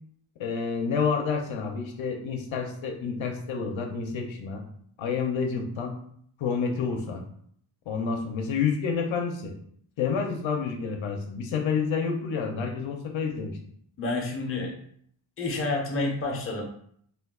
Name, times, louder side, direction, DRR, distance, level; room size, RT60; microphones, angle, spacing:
voice 1, 0.4-4.6 5.0-6.0 6.4-7.2 7.9-9.5 10.0-13.6, left 5 dB, 75° left, 2 dB, 0.6 m, -29 dB
voice 2, 14.0-14.7 15.4-16.6, left 2 dB, 30° left, 0 dB, 0.6 m, -29 dB
2.4 x 2.2 x 3.5 m, 0.64 s
wide cardioid pair, 130°, 48 cm